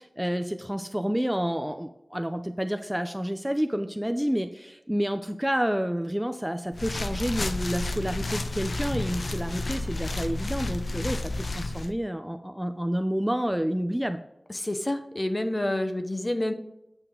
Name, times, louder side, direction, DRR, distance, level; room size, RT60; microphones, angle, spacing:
voice 1, 0.0-14.2, equal, 5° right, 8 dB, 0.5 m, -29 dB
sound 1, 6.7-11.9, left 2 dB, 70° left, 0.6 m, -31 dB
voice 2, 14.5-16.5, left 1 dB, 30° left, 8 dB, 0.9 m, -28 dB
9.1 x 5.8 x 3.8 m, 0.88 s
wide cardioid pair, 75°, 0 cm